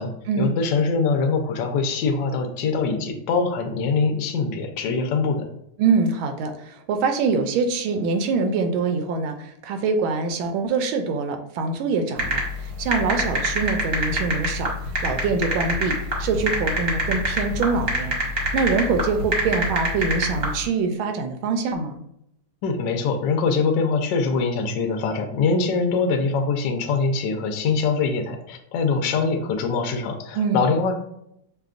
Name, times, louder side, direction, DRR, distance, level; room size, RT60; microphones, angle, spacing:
voice 1, 0.0-5.5 22.6-30.9, left 4 dB, 70° left, 4 dB, 1.2 m, -23 dB
voice 2, 5.8-14.7 15.0-18.1 18.5-22.0 30.3-30.6, right 4 dB, 75° right, 6 dB, 1.3 m, -24 dB
sound 1, 12.2-20.5, right 1 dB, 40° right, 0.8 m, -24 dB
6.6 x 2.2 x 2.4 m, 0.76 s
omnidirectional pair, 2.3 m